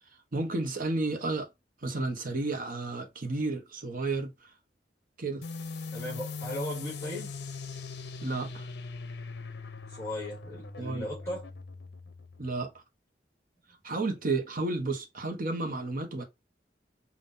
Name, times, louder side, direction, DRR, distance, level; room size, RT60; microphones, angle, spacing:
voice 1, 0.3-1.5 1.8-4.3 5.2-5.4 8.2-8.7 10.8-11.1 12.4-12.7 13.8-16.2, right 2 dB, 50° right, 1.0 m, -32 dB
sound 1, 5.4-12.7, left 4 dB, 65° left, 0.6 m, -41 dB
voice 2, 5.9-7.3 9.9-11.5, left 1 dB, 15° left, 2.2 m, -37 dB
5.4 x 2.5 x 2.6 m
head